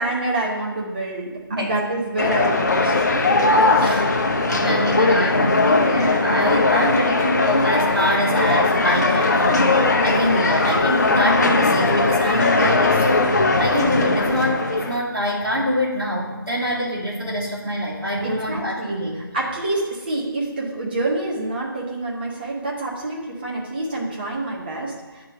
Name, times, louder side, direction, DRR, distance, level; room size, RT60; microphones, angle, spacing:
voice 1, 0.0-3.3 3.7-4.0 18.2-19.0 19.3-25.2, right 2 dB, 25° right, -4 dB, 1.3 m, -27 dB
sound 1, 2.2-15.0, left 3 dB, 45° left, 0.8 m, -19 dB
voice 2, 3.7-13.3 13.6-19.1, equal, 65° right, -5 dB, 1.6 m, -25 dB
9.5 x 3.8 x 5.8 m, 1.3 s
figure-of-eight pair, 160°, 13 cm